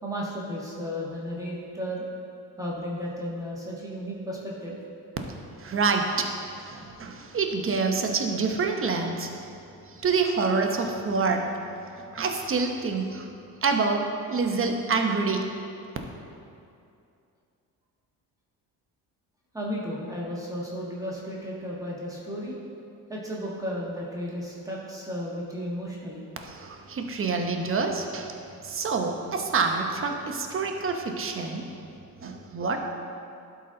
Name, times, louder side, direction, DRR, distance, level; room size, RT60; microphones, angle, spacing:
voice 1, 0.0-2.1 2.6-4.8 19.5-22.6 23.1-26.2, equal, 10° right, -5 dB, 1.5 m, -34 dB
voice 2, 5.6-6.3 6.6-9.5 10.0-11.4 12.1-13.2 13.6-14.0 14.3-15.4 26.5-28.3 28.6-31.6 32.2-32.8, right 4 dB, 35° right, 3 dB, 0.9 m, -27 dB
12.0 x 4.1 x 3.8 m, 2.5 s
cardioid pair, 100°, 39 cm